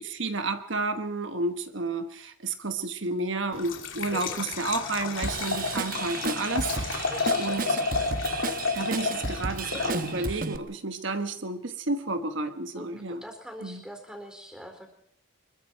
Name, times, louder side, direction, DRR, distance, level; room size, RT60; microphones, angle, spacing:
voice 1, 0.0-7.1 7.4-7.8 8.7-13.2 13.6-13.8, right 2 dB, 70° right, 8 dB, 1.3 m, -31 dB
Liquid, 3.5-10.4, left 4 dB, 80° left, 3.2 m, -31 dB
voice 2, 4.1-4.5 7.1-7.5 12.8-14.9, equal, 5° right, 4 dB, 4.4 m, -43 dB
Drum kit / Drum, 5.2-10.6, right 4 dB, 45° right, 1.0 m, -33 dB
25.5 x 22.0 x 4.6 m, 0.70 s
head